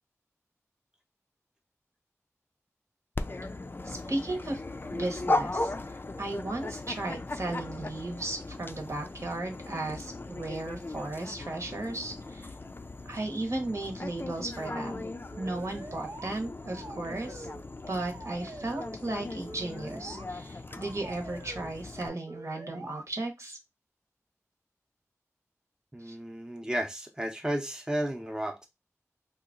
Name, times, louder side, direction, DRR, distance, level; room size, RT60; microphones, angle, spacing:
Dog, 3.2-22.1, left 2 dB, 40° left, 0.4 m, -37 dB
voice 1, 3.8-4.6 4.9-12.5 13.0-15.1 15.4-17.5 17.9-23.6 26.0-26.2, right 2 dB, 65° right, 1.0 m, -35 dB
sound 1, 15.3-16.4 16.7-17.7 17.9-19.0 19.4-20.3 20.7-21.7 22.3-23.0, right 2 dB, 85° right, 0.5 m, -45 dB
voice 2, 25.9-28.7, right 1 dB, 10° right, 0.6 m, -33 dB
2.8 x 2.4 x 3.7 m
wide cardioid pair, 60°, 5 cm